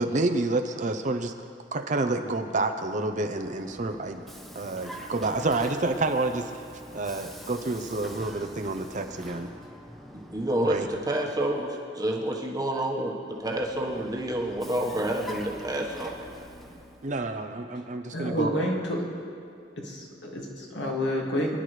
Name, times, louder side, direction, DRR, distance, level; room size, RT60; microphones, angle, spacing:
voice 1, 0.0-1.3 1.7-4.2 4.5-6.6 6.9-9.5 10.6-10.9 17.0-18.6, right 2 dB, 40° right, 6 dB, 0.7 m, -28 dB
Vehicle, 3.1-11.6 13.3-17.2, equal, ahead, 0.8 m, -45 dB
voice 2, 10.3-16.2, right 1 dB, 20° right, -1 dB, 1.3 m, -29 dB
voice 3, 18.1-19.0 19.8-21.6, left 1 dB, 65° left, -2 dB, 2.2 m, -29 dB
24.0 x 11.0 x 3.3 m, 2.4 s
head